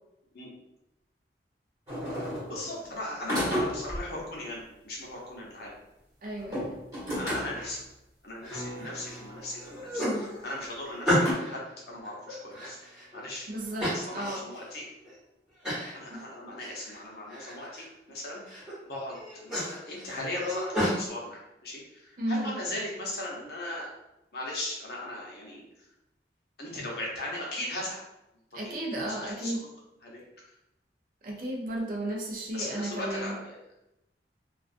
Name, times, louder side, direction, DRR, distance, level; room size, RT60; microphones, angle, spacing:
sound 1, 1.9-2.7 3.3-4.1 6.4-7.8 8.7-8.8 9.7-9.8 11.2-11.3, equal, 20° right, 1.2 m, -32 dB
voice 1, 2.5-5.8 6.4-6.5 7.2-7.8 8.2-12.8 13.1-13.5 13.9-14.9 15.9-23.9 24.3-25.6 26.6-28.0 28.5-29.5 30.0-30.2 32.5-33.6, left 1 dB, 60° left, -3 dB, 0.7 m, -38 dB
voice 2, 6.2-6.8 13.5-14.5 16.1-16.2 22.2-22.6 28.5-29.7 31.2-33.4, right 1 dB, 50° right, -1 dB, 0.5 m, -34 dB
sound 2, 8.4-9.2 9.6-11.6 12.0-13.2 13.8-14.6 15.0-15.1 15.6-16.0 16.3-17.0 17.3-17.8 18.3-18.7 19.1-21.0, equal, 5° right, 1.1 m, -32 dB
sound 3, 8.5-14.5 19.2-19.3, equal, 30° left, 0.8 m, -49 dB
2.3 x 2.3 x 2.5 m, 0.89 s
head